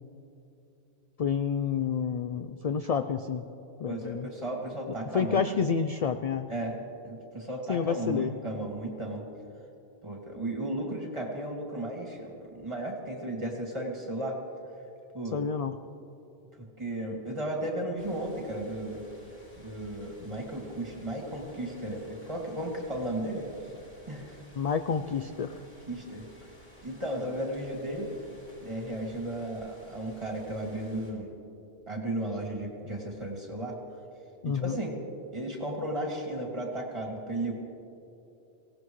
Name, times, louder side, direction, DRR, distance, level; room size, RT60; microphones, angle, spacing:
voice 1, 1.2-3.4 3.8-4.3 5.1-6.5 7.7-8.3 15.3-15.8 24.6-25.5 34.4-34.8, left 6 dB, 60° left, 9 dB, 0.4 m, -29 dB
voice 2, 3.9-5.6 6.5-9.2 10.0-14.4 15.1-15.4 16.8-19.0 19.6-23.5 24.1-24.4 25.9-26.2 26.8-28.1 28.6-31.3 31.9-33.7 34.4-35.0 35.3-37.5, right 1 dB, 25° right, -1 dB, 2.5 m, -35 dB
sound 1, 18.0-31.1, equal, 10° left, 4.4 m, -55 dB
24.5 x 17.5 x 3.2 m, 2.8 s
omnidirectional pair, 1.1 m